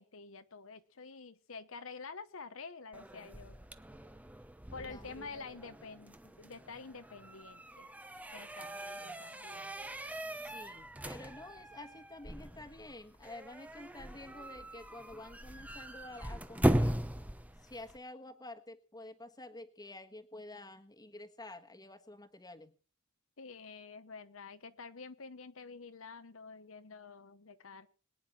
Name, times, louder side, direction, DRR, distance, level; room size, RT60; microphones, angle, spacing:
voice 1, 0.0-3.6 4.7-7.9 8.3-9.7 23.4-27.9, left 4 dB, 75° left, 10 dB, 1.0 m, -48 dB
sound 1, 2.9-18.0, right 1 dB, 5° right, 0.8 m, -39 dB
voice 2, 10.4-17.0 17.6-22.7, left 2 dB, 20° left, 7 dB, 1.4 m, -49 dB
22.5 x 9.6 x 4.4 m, 0.42 s
head